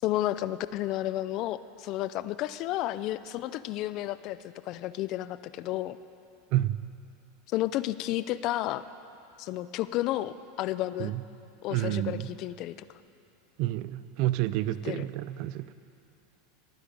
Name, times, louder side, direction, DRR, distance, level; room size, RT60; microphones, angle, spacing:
voice 1, 0.0-4.4 4.7-6.0 7.5-8.8 9.4-11.1 11.6-12.7 14.9-15.1, left 15 dB, 50° left, 15 dB, 0.4 m, -31 dB
voice 2, 11.7-12.3 13.6-15.7, right 15 dB, 55° right, 15 dB, 0.5 m, -29 dB
20.5 x 9.7 x 5.2 m, 2.8 s
supercardioid pair, 125°, 0 cm